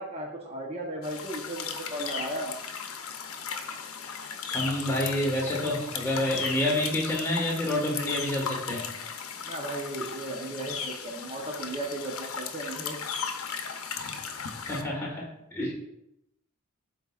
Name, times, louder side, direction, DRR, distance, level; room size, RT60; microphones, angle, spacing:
voice 1, 0.0-2.5 9.5-13.0, right 1 dB, 30° right, -1 dB, 0.8 m, -35 dB
sound 1, 1.0-14.8, left 6 dB, 75° left, 0.7 m, -36 dB
voice 2, 4.5-8.9 14.6-15.7, left 1 dB, 10° left, -3 dB, 1.4 m, -28 dB
11.5 x 4.2 x 2.4 m, 0.85 s
head